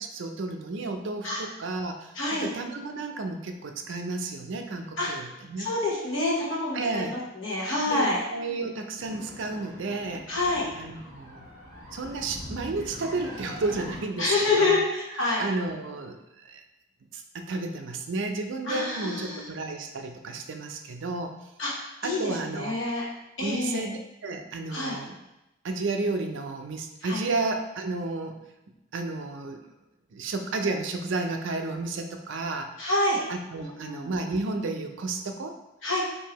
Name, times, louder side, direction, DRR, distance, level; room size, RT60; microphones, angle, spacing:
voice 1, 0.0-5.7 6.7-7.2 7.9-10.2 10.8-11.4 11.9-14.8 15.2-16.6 17.1-21.3 22.0-22.7 23.4-25.2 25.6-28.4 28.9-29.6 30.1-32.9 33.3-35.5, right 3 dB, 60° right, 5 dB, 0.4 m, -32 dB
voice 2, 2.1-2.5 5.0-5.1 5.6-8.2 10.3-10.7 14.2-15.5 18.7-19.4 21.6-21.7 22.0-23.1 23.4-23.8 24.7-25.0 27.0-27.2 32.8-33.2 33.8-34.1 35.8-36.0, left 2 dB, 65° left, -4 dB, 1.1 m, -27 dB
sound 1, 9.0-14.0, equal, 50° left, 1.3 m, -42 dB
4.5 x 2.8 x 3.0 m, 0.93 s
head